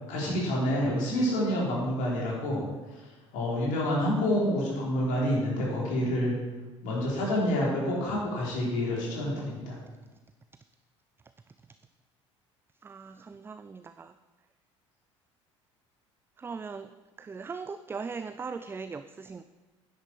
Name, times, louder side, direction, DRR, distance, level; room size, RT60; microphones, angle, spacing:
voice 1, 0.1-2.6 3.3-6.3 6.8-9.8, equal, 55° left, -4 dB, 3.7 m, -28 dB
voice 2, 12.8-14.1 16.4-16.9 17.2-19.4, right 5 dB, 15° right, 11 dB, 0.4 m, -39 dB
10.0 x 8.3 x 4.5 m, 1.2 s
figure-of-eight pair, 60°, 16 cm